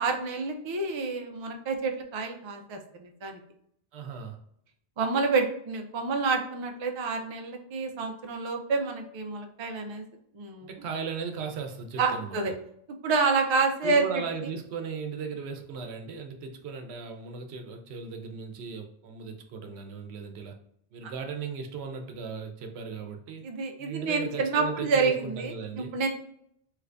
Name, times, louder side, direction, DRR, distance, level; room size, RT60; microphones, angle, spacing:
voice 1, 0.0-3.4 5.0-10.0 10.3-10.7 12.0-12.5 13.0-14.0 23.4-26.1, right 4 dB, 45° right, 4 dB, 0.4 m, -28 dB
voice 2, 3.9-4.4 10.6-12.5 13.8-20.6 20.9-23.5 23.8-25.9, right 5 dB, 85° right, 4 dB, 0.9 m, -37 dB
3.2 x 2.5 x 3.3 m, 0.71 s
omnidirectional pair, 1.1 m